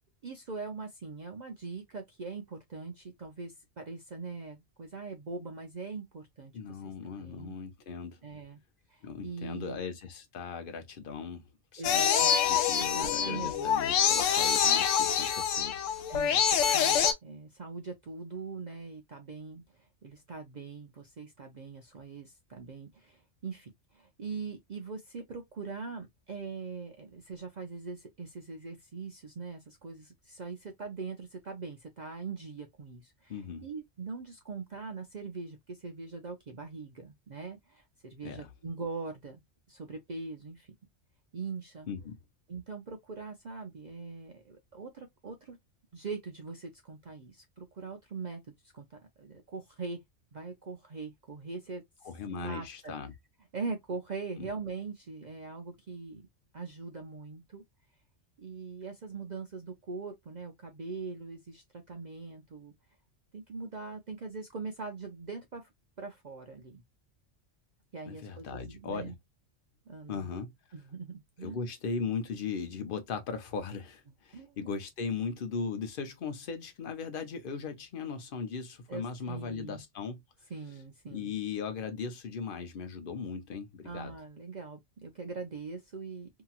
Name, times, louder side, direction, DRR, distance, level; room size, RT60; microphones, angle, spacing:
voice 1, 0.2-7.5 8.2-8.6 8.9-9.8 11.8-12.4 12.8-13.7 16.1-39.4 39.7-40.7 41.3-41.9 42.5-45.6 45.9-50.0 50.3-51.8 52.3-52.9 53.5-56.3 56.5-57.6 58.4-62.7 63.3-65.7 66.0-66.8 67.9-69.1 69.9-70.3 70.7-71.6 74.3-74.7 78.9-79.8 80.5-81.3 83.8-86.3, right 4 dB, 50° right, 0.6 m, -42 dB
voice 2, 6.5-8.2 9.0-11.4 11.7-12.0 12.4-15.8 33.3-33.6 38.2-38.5 41.9-42.2 52.0-53.1 54.4-54.5 68.1-69.1 70.1-70.5 71.4-80.2 81.1-84.1, left 5 dB, 50° left, 0.9 m, -38 dB
sound 1, 11.8-17.1, left 8 dB, 90° left, 1.0 m, -26 dB
2.9 x 2.7 x 2.3 m
omnidirectional pair, 1.3 m